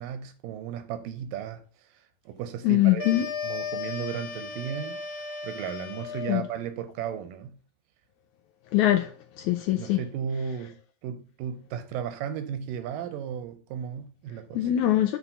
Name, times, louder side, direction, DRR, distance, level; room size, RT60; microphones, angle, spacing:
voice 1, 0.0-1.6 2.3-5.0 5.4-7.5 9.7-14.7, right 8 dB, 85° right, 2.5 m, -35 dB
voice 2, 2.6-3.3 6.3-6.4 8.7-9.1 9.4-10.0 14.5-15.2, left 14 dB, 85° left, 1.7 m, -22 dB
sound 1, 3.0-6.5, left 6 dB, 55° left, 1.4 m, -35 dB
7.1 x 4.1 x 5.5 m
omnidirectional pair, 3.9 m